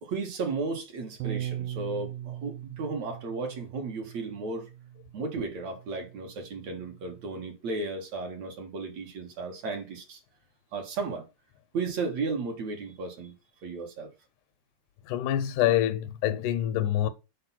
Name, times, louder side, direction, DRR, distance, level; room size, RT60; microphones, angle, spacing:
voice 1, 0.0-4.7 5.1-10.2 10.7-11.3 11.7-13.4 13.6-14.1, right 3 dB, 60° right, 2.8 m, -34 dB
Bass guitar, 1.2-7.4, right 11 dB, 90° right, 2.2 m, -40 dB
voice 2, 15.0-17.1, left 12 dB, 85° left, 2.1 m, -26 dB
6.6 x 5.3 x 5.8 m
omnidirectional pair, 3.7 m